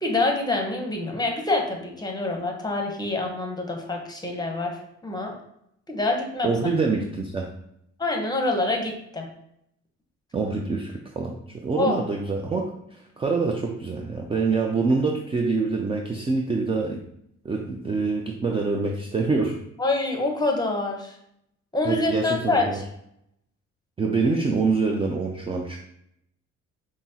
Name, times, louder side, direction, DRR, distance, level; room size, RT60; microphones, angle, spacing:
voice 1, 0.0-5.3 5.9-6.5 8.0-9.3 11.8-12.0 19.8-21.2 21.7-22.8, left 2 dB, 15° left, 1 dB, 0.8 m, -26 dB
voice 2, 6.4-7.5 10.3-17.0 17.4-19.6 21.9-22.8 24.0-25.8, right 4 dB, 20° right, 2 dB, 0.3 m, -25 dB
5.8 x 2.0 x 2.7 m, 0.74 s
cardioid pair, 90°, 30 cm